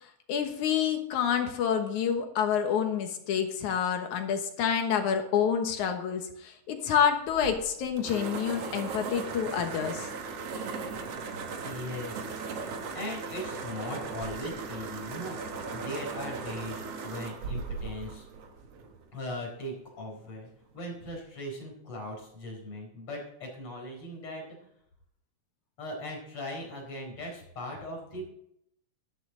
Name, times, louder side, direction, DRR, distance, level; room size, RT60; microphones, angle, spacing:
voice 1, 0.3-10.1, left 8 dB, 75° left, 5 dB, 2.6 m, -28 dB
sound 1, 7.3-19.1, right 4 dB, 60° right, 2.1 m, -38 dB
voice 2, 11.6-12.4 12.9-15.4 15.7-18.3 19.1-20.5 20.7-24.4 25.8-28.3, left 1 dB, 45° left, 0 dB, 5.3 m, -39 dB
13.0 x 12.0 x 3.9 m, 0.74 s
omnidirectional pair, 3.6 m